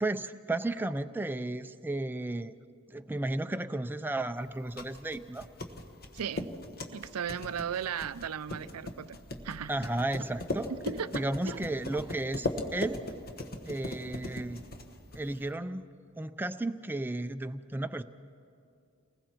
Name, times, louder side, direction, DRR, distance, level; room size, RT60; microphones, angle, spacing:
voice 1, 0.0-2.5 2.9-5.5 9.7-10.7 11.1-13.1 13.7-14.6 15.1-15.9 16.2-18.0, right 2 dB, 10° right, 0.5 m, -33 dB
sound 1, 4.5-15.5, left 2 dB, 45° left, 1.3 m, -39 dB
voice 2, 6.1-6.6 6.9-9.2 9.4-9.7 10.7-11.6, right 7 dB, 85° right, 0.5 m, -36 dB
29.0 x 20.5 x 4.5 m
head